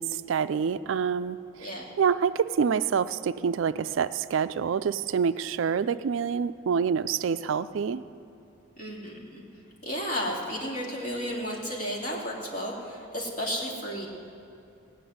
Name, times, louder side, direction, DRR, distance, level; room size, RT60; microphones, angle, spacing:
voice 1, 0.0-1.7 2.0-8.0, right 6 dB, 65° right, 13 dB, 0.3 m, -27 dB
voice 2, 8.8-9.4 9.8-14.1, equal, 40° left, -3 dB, 2.5 m, -33 dB
16.5 x 6.0 x 9.3 m, 2.6 s
head